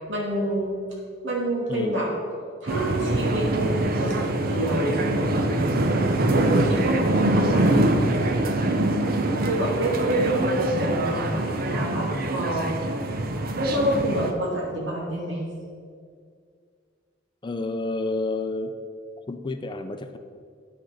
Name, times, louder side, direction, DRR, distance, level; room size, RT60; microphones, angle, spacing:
voice 1, 0.1-0.8 1.2-2.1 2.6-5.0 6.3-7.9 9.5-12.7 13.6-15.4, right 1 dB, 80° right, -3 dB, 2.7 m, -27 dB
voice 2, 1.7-2.0 17.4-18.7 19.3-20.2, left 2 dB, 25° left, 8 dB, 0.5 m, -29 dB
sound 1, 2.7-14.3, right 1 dB, 55° right, 0.8 m, -24 dB
9.5 x 6.5 x 5.7 m, 2.1 s
head